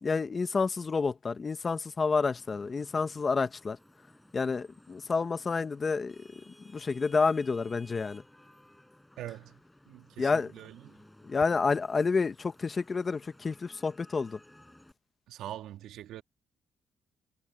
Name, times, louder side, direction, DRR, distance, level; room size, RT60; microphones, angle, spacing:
voice 1, 0.0-3.8 4.3-6.2 6.7-8.2 10.2-10.5 11.2-14.4, left 4 dB, 35° left, 1.1 m, -29 dB
Vehicle horn car horn honking / Traffic noise roadway noise, 2.2-14.9, left 1 dB, 5° left, 5.6 m, -58 dB
voice 2, 9.2-9.6 9.9-11.0 15.3-16.2, right 12 dB, 85° right, 2.3 m, -43 dB
cardioid pair, 90°, 0 cm